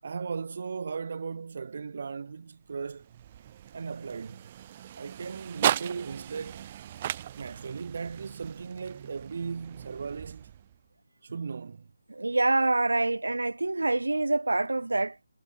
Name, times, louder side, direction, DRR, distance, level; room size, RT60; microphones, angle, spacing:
voice 1, 0.0-3.1 3.7-4.4 4.9-6.7 7.4-10.5 11.2-11.9, right 5 dB, 50° right, 7.2 m, -37 dB
sound 1, 2.6-10.9, right 11 dB, 30° right, 4.6 m, -36 dB
voice 2, 12.1-15.2, right 2 dB, 75° right, 6.9 m, -26 dB
figure-of-eight pair, 150°, 0 cm